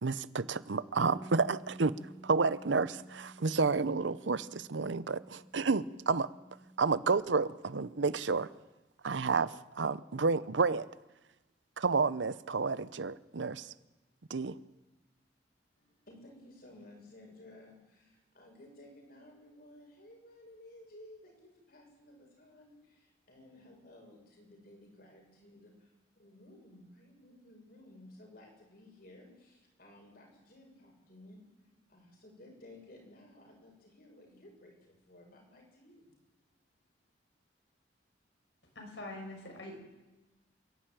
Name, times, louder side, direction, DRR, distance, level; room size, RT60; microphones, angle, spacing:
voice 1, 0.0-1.9 2.2-6.3 6.8-8.5 9.0-10.9 11.8-13.7 14.3-14.6, right 4 dB, 85° right, 17 dB, 0.8 m, -30 dB
Bass guitar, 1.0-7.2, right 1 dB, 20° right, 1.7 m, -52 dB
voice 2, 15.8-36.2, left 1 dB, 55° left, 0 dB, 6.5 m, -56 dB
voice 3, 38.8-39.8, left 1 dB, 70° left, 2 dB, 5.7 m, -44 dB
27.5 x 11.5 x 9.1 m, 1.1 s
head